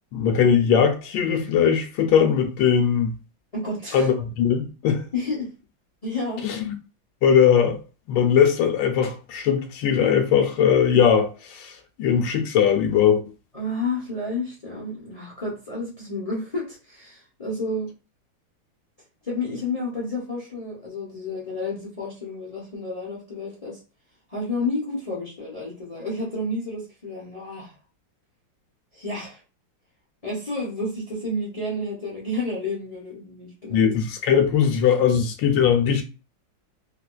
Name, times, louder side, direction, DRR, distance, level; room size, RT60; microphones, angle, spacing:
voice 1, 0.1-3.1 3.9-5.1 6.4-6.7 7.2-7.8 8.1-13.2 33.7-36.0, left 7 dB, 80° left, 1.3 m, -20 dB
voice 2, 3.5-4.1 5.1-5.5 6.0-6.4 13.5-17.9 19.2-23.8 24.3-27.7 28.9-29.4 30.2-33.9, left 2 dB, 55° left, 0.4 m, -30 dB
3.9 x 2.4 x 2.2 m
omnidirectional pair, 2.1 m